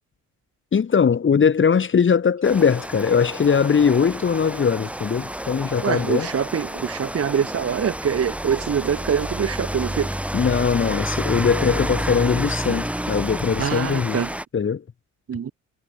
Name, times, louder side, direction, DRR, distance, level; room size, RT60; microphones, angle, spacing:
voice 1, 0.7-6.3 10.3-14.2 14.5-14.8, left 6 dB, 40° left, 2.6 m, -20 dB
Rain, 2.4-14.4, right 1 dB, 5° right, 7.1 m, -30 dB
voice 2, 5.8-10.2 13.6-14.3 15.3-15.5, right 8 dB, 50° right, 4.6 m, -24 dB
cardioid pair, 90°, 30 cm